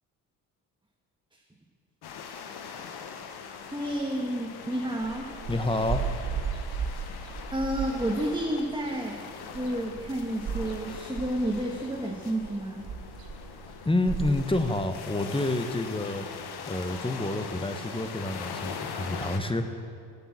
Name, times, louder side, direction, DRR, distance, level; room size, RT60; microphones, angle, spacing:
sound 1, 2.0-19.4, left 6 dB, 60° left, 1.2 m, -41 dB
voice 1, 3.7-5.3 7.5-9.1 9.4-12.8, right 1 dB, 10° right, -1 dB, 1.5 m, -30 dB
sound 2, 5.0-14.7, right 6 dB, 55° right, 1.6 m, -36 dB
voice 2, 5.5-6.1 13.8-16.3 16.7-19.6, left 2 dB, 10° left, 8 dB, 1.1 m, -28 dB
9.9 x 9.0 x 7.5 m, 2.2 s
hypercardioid pair, 55°, 44 cm